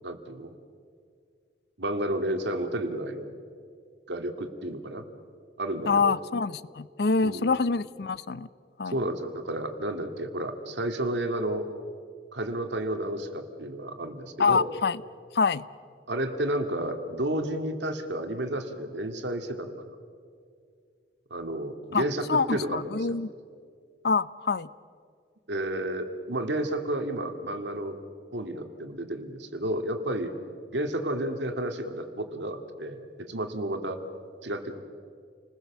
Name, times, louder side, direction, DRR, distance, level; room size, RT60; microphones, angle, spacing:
voice 1, 0.0-0.5 1.8-3.3 4.1-5.0 5.6-6.2 7.2-7.5 8.9-11.7 12.3-14.7 16.1-19.8 21.3-23.2 25.5-28.0 28.3-30.3 30.7-33.0 33.3-34.0 34.4-34.8, right 1 dB, 80° right, 6 dB, 2.2 m, -31 dB
voice 2, 5.9-8.5 8.8-8.9 14.4-15.0 15.3-15.7 21.9-23.3 24.0-24.7, left 4 dB, 65° left, 18 dB, 0.6 m, -26 dB
29.5 x 20.5 x 7.2 m, 2.3 s
head